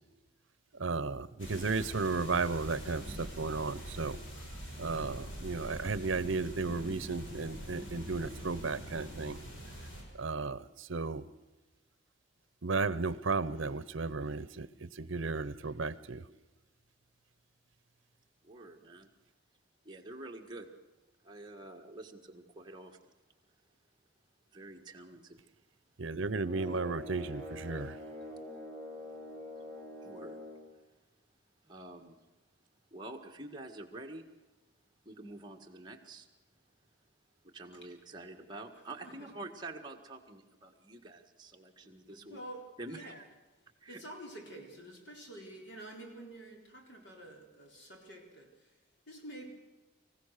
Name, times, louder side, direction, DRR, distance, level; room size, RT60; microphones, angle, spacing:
voice 1, 0.7-4.2 4.8-9.4 10.2-11.3 12.6-16.2 26.0-27.9, right 4 dB, 70° right, 16 dB, 0.8 m, -34 dB
sound 1, 1.4-10.0, equal, 75° left, 6.0 m, -44 dB
voice 2, 18.4-19.1 19.9-20.7 21.2-23.1 24.5-25.4 26.5-27.3 30.0-30.4 31.6-32.2 32.9-34.2 35.1-36.3 37.4-42.4 42.8-43.2 43.8-44.0, right 2 dB, 20° right, 1 dB, 1.7 m, -47 dB
sound 2, 26.4-30.7, left 1 dB, 10° left, 2.7 m, -45 dB
voice 3, 41.8-42.6 42.9-43.2 43.9-48.5 49.1-49.5, right 1 dB, 60° left, 1 dB, 4.2 m, -48 dB
25.5 x 15.5 x 6.6 m, 1.2 s
head